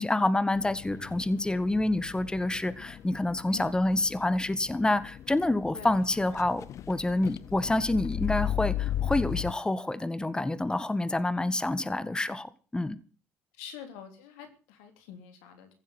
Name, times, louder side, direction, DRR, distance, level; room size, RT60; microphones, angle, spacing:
voice 1, 0.0-13.0, left 2 dB, 15° left, 1.7 m, -28 dB
sound 1, 0.5-9.5, left 11 dB, 60° left, 0.7 m, -36 dB
voice 2, 5.7-6.1 13.5-15.7, left 8 dB, 85° left, 3.2 m, -46 dB
16.0 x 7.4 x 9.5 m
hypercardioid pair, 55°, 6 cm